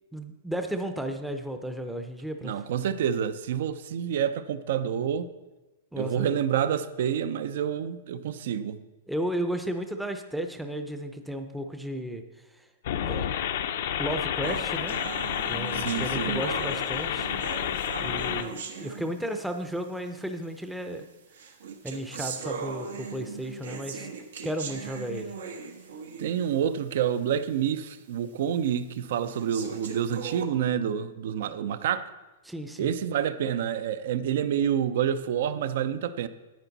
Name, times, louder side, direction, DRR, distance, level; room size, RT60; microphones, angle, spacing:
voice 1, 0.1-2.6 5.9-6.4 9.1-12.2 12.6-12.7 13.0-13.3 14.0-15.0 15.5-17.3 18.0-21.1 21.8-24.1 24.4-25.3 32.4-32.9, right 1 dB, 5° right, 0.6 m, -34 dB
voice 2, 2.4-5.3 6.0-8.8 15.7-16.4 26.2-32.1 32.8-36.3, right 9 dB, 60° right, 0.6 m, -28 dB
sound 1, 12.8-18.4, left 10 dB, 65° left, 0.6 m, -30 dB
sound 2, 14.4-19.6 20.4-20.5 21.3-26.6 27.0-27.1 27.6-27.7 28.4-28.5 29.3-30.4, right 6 dB, 85° right, 1.3 m, -39 dB
10.5 x 9.1 x 4.0 m
hypercardioid pair, 150°, 0 cm